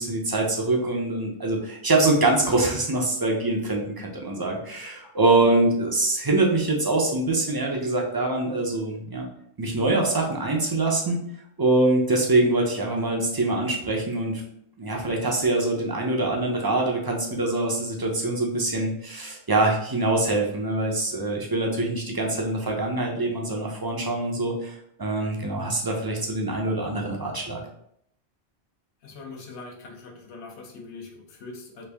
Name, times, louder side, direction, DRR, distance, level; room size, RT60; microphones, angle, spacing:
voice 1, 0.0-9.3 9.6-11.2 11.6-14.4 14.8-27.6, right 2 dB, 40° right, 0 dB, 0.3 m, -24 dB
voice 2, 29.0-31.8, left 3 dB, 85° left, 1 dB, 1.0 m, -42 dB
3.2 x 2.5 x 3.3 m, 0.71 s
omnidirectional pair, 1.1 m